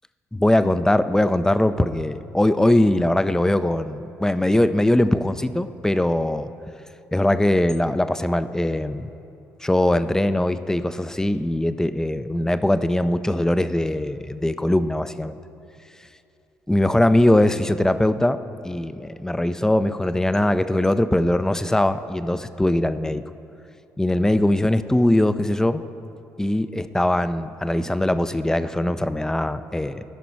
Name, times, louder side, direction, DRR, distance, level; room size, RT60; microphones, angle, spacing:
voice 1, 0.3-6.5 7.1-9.1 9.6-15.4 16.7-18.4 18.6-23.2 24.0-25.8 26.4-30.0, left 1 dB, 5° left, 12 dB, 0.4 m, -21 dB
16.0 x 6.0 x 4.5 m, 2.7 s
figure-of-eight pair, 45°, 8 cm